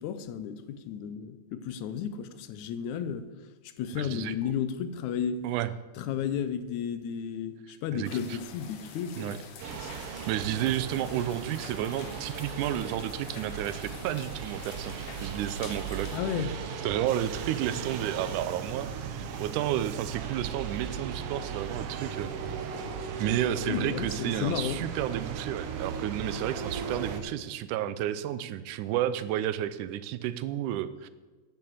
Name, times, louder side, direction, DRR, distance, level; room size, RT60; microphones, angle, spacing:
voice 1, 0.0-3.3 3.8-5.4 6.0-9.4 9.7-9.9 16.1-16.5 23.7-24.8, left 8 dB, 80° left, 11 dB, 2.0 m, -33 dB
voice 2, 3.9-4.5 5.4-5.7 7.9-8.4 9.2-9.4 10.1-14.9 15.2-16.1 16.4-16.5 16.8-22.3 23.2-31.1, right 12 dB, 85° right, 14 dB, 2.1 m, -31 dB
sound 1, 8.0-16.2, left 6 dB, 60° left, 1.7 m, -47 dB
sound 2, 9.6-27.2, right 6 dB, 65° right, 1.5 m, -37 dB
9.4 x 7.1 x 7.9 m, 1.3 s
omnidirectional pair, 3.5 m